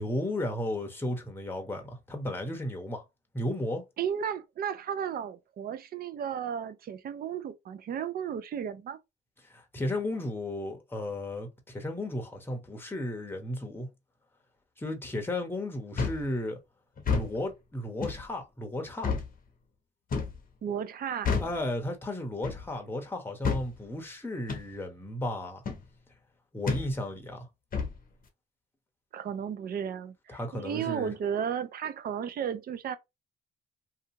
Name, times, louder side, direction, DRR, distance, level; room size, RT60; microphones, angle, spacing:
voice 1, 0.0-3.0 3.3-3.8 9.5-13.9 14.8-16.6 17.1-19.2 21.4-25.6 26.5-27.5 30.3-31.1, left 1 dB, 10° left, 0.8 m, -34 dB
voice 2, 4.0-9.0 20.6-21.3 29.1-33.0, right 8 dB, 50° right, 0.4 m, -34 dB
sound 1, 16.0-16.3 17.0-17.3 18.0-18.2 19.0-19.3 20.1-20.4 21.2-21.6 22.4-22.7 23.4-23.7 24.5-24.7 25.6-25.8 26.7-26.9 27.7-28.0, left 5 dB, 45° left, 0.8 m, -29 dB
2.7 x 2.3 x 2.7 m
cardioid pair, 90°, 20 cm